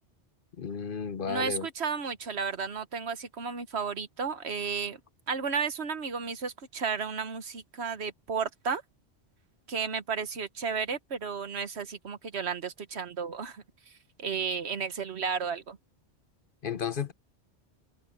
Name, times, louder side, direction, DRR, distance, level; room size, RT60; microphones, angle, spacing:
voice 1, 0.6-1.7 16.6-17.1, left 6 dB, 55° left, 1.0 m, -33 dB
voice 2, 1.3-5.0 5.3-8.8 9.7-13.6 14.2-15.8, right 5 dB, 70° right, 1.5 m, -33 dB
open air
omnidirectional pair, 1.1 m